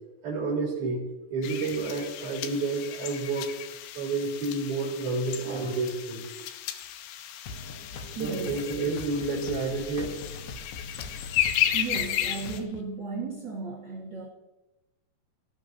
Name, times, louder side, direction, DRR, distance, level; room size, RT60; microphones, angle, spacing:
voice 1, 0.2-1.0 1.3-3.5 4.0-6.2 8.2-10.1, right 3 dB, 50° right, -8 dB, 3.7 m, -30 dB
sound 1, 1.4-12.6, left 11 dB, 90° left, 2.8 m, -34 dB
sound 2, 7.5-12.8, left 3 dB, 75° left, 1.8 m, -41 dB
voice 2, 8.1-8.6 10.7-10.8 11.6-14.3, right 4 dB, 75° right, -5 dB, 1.0 m, -35 dB
18.0 x 14.0 x 2.6 m, 1.0 s
omnidirectional pair, 4.8 m